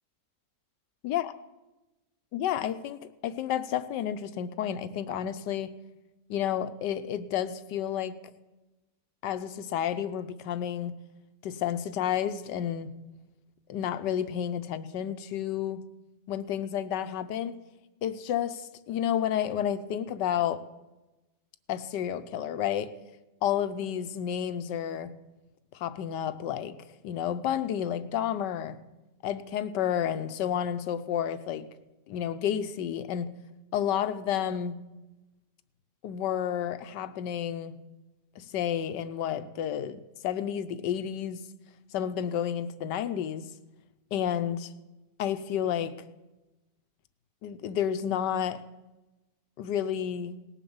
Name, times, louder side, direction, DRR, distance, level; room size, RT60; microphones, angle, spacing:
voice 1, 2.3-5.7 6.3-8.1 9.2-10.9 11.4-12.9 13.7-15.8 16.3-17.6 18.0-20.6 21.7-22.9 23.4-25.1 25.7-26.8 27.0-28.8 29.2-31.7 32.1-33.3 33.7-34.8 36.0-37.8 38.4-41.4 41.9-43.5 44.1-44.7 45.2-45.9 47.4-48.6 49.6-50.4, left 9 dB, 80° left, 12 dB, 1.4 m, -31 dB
18.5 x 7.2 x 7.0 m, 1.0 s
omnidirectional pair, 1.9 m